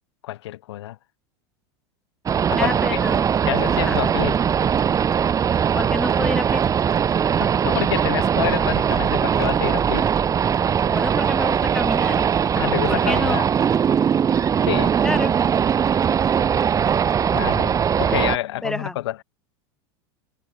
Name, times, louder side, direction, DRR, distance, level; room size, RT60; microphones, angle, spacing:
voice 1, 0.2-1.0 2.5-3.0 3.4-4.4 7.6-10.5 12.6-13.5 14.7-15.0 17.3-19.2, left 15 dB, 85° left, 3.7 m, -28 dB
sound 1, 2.3-18.4, right 8 dB, 25° right, 1.9 m, -20 dB
voice 2, 2.6-3.2 3.7-4.0 5.7-6.6 10.9-12.3 12.9-13.4 15.0-15.3 18.6-19.0, left 1 dB, 5° left, 3.1 m, -28 dB
supercardioid pair, 130°, 14 cm